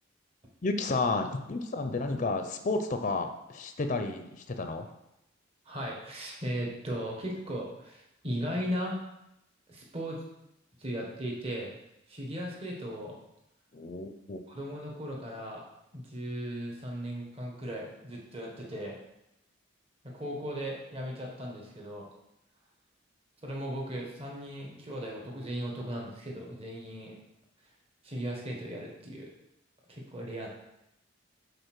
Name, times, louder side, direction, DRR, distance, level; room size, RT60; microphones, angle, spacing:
voice 1, 0.6-4.9 13.7-14.4, left 3 dB, 40° left, 6 dB, 0.5 m, -31 dB
voice 2, 5.6-9.0 9.7-10.2 10.8-11.7 12.1-13.2 14.5-15.6 15.9-19.0 20.0-22.1 23.4-27.2 28.0-29.3 29.9-30.5, equal, 30° right, -1 dB, 1.3 m, -37 dB
5.4 x 4.2 x 6.0 m, 0.85 s
head